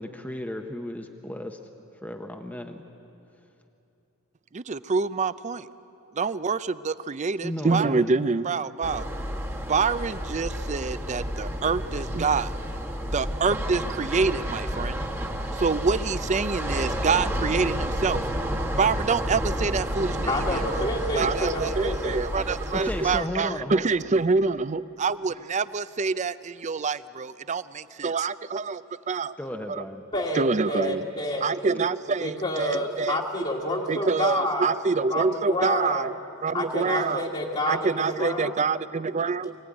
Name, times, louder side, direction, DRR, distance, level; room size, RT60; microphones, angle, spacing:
voice 1, 0.0-1.6 2.0-2.8 7.4-8.1 11.5-11.6 22.7-23.8 29.4-30.0, left 1 dB, 10° left, 4 dB, 0.8 m, -34 dB
voice 2, 4.5-5.7 6.2-9.1 9.7-12.5 13.1-15.0 15.5-18.2 18.7-20.9 21.1-29.4 29.7-29.8 30.4-31.0 31.4-33.5 33.9-36.1 36.4-37.3 37.7-39.6, right 4 dB, 35° right, 16 dB, 0.5 m, -26 dB
sound 1, 8.8-23.2, equal, 10° right, 1.3 m, -30 dB
voice 3, 20.2-22.2 30.1-31.4 32.2-34.7 35.1-36.1 36.5-38.6, left 1 dB, 30° left, -4 dB, 1.5 m, -29 dB
24.0 x 16.5 x 9.7 m, 2.8 s
head